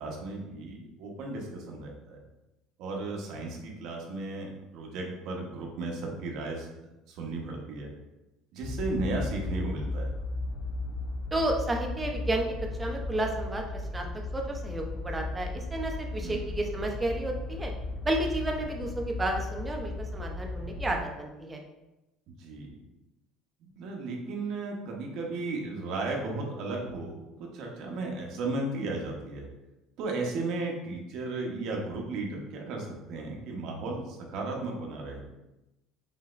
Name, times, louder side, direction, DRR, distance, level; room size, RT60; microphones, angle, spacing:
voice 1, 0.0-2.2 2.8-6.7 7.1-7.9 8.5-10.1 16.2-16.4 22.3-22.7 23.6-29.5 30.0-35.2, right 2 dB, 55° right, 0 dB, 0.9 m, -35 dB
sound 1, 8.6-21.0, left 2 dB, 85° left, 0.6 m, -36 dB
voice 2, 11.3-12.4 12.8-14.0 14.3-17.7 18.0-21.6, right 1 dB, 15° right, 2 dB, 0.5 m, -31 dB
5.5 x 2.9 x 2.5 m, 0.98 s
cardioid pair, 155°, 0 cm